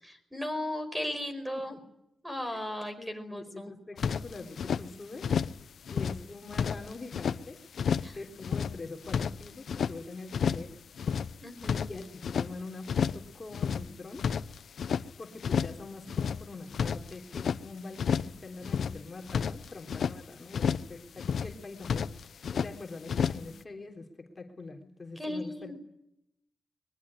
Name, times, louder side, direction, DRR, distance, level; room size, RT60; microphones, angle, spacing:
voice 1, 0.0-1.8 2.2-3.7 8.0-8.2 11.4-11.9 25.1-25.7, left 1 dB, 10° right, 9 dB, 5.2 m, -36 dB
voice 2, 3.0-5.4 5.9-7.6 8.1-10.8 11.9-14.3 15.2-25.7, left 3 dB, 30° left, 2 dB, 3.5 m, -44 dB
sound 1, 4.0-4.8 5.2-5.6 5.9-7.4 7.7-8.2 8.4-9.9 10.3-10.7 11.0-12.5 12.9-13.3 13.5-15.1 15.4-15.8 16.1-17.6 18.0-18.4 18.6-20.2 20.5-20.9 21.2-21.6 21.8-22.7 23.1-23.5, left 7 dB, 75° left, 0.9 m, -31 dB
23.0 x 21.0 x 9.9 m, 0.79 s
wide cardioid pair, 140°, 0 cm